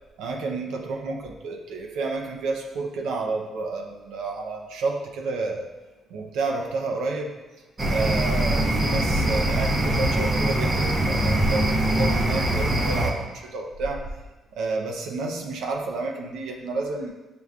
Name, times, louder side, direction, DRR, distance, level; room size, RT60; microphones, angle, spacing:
voice 1, 0.2-5.7 6.1-7.3 7.9-14.1 14.5-17.1, right 3 dB, 85° right, 1 dB, 0.4 m, -30 dB
sound 1, 7.8-13.1, right 1 dB, 35° right, 0.6 m, -23 dB
6.5 x 2.2 x 2.4 m, 1.1 s
cardioid pair, 90°, 0 cm